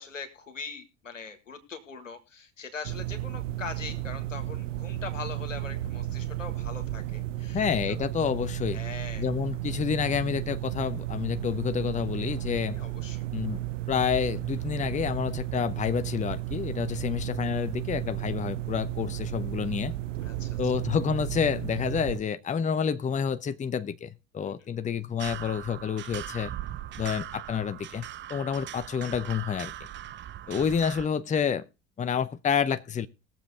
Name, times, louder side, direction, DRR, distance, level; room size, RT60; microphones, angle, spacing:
voice 1, 0.0-7.6 8.7-9.3 12.7-13.2 16.9-17.0 20.2-20.7 30.4-30.7, left 5 dB, 90° left, 1.8 m, -41 dB
sound 1, 2.8-22.2, right 15 dB, 75° right, 0.9 m, -33 dB
voice 2, 7.5-8.8 9.2-12.8 13.3-20.0 20.6-26.5 27.0-29.7 30.5-31.6 32.0-33.1, left 7 dB, 20° left, 0.7 m, -29 dB
sound 2, 25.2-31.1, right 12 dB, 30° right, 0.6 m, -40 dB
20.5 x 7.4 x 3.4 m
figure-of-eight pair, 70°, 37 cm